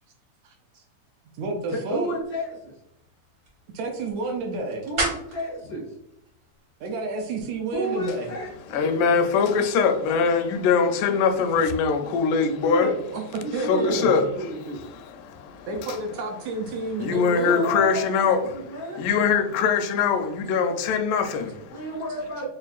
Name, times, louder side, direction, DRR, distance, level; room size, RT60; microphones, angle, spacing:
voice 1, 0.4-0.8 1.3-2.1 3.7-4.9 6.8-8.3 13.0-14.2 15.7-17.7, right 3 dB, 80° right, 1.7 m, -30 dB
voice 2, 1.7-2.7 4.8-5.8 7.7-8.9 12.3-13.0 13.4-13.9 14.4-14.8 17.3-19.1 21.7-22.5, equal, 65° left, 0.7 m, -31 dB
sound 1, 2.0-7.2, right 2 dB, 60° right, 0.9 m, -36 dB
voice 3, 8.7-12.9 13.7-14.3 14.9-15.7 17.0-18.4 19.0-21.8, left 6 dB, 85° left, 2.1 m, -22 dB
5.5 x 2.4 x 2.3 m
omnidirectional pair, 3.5 m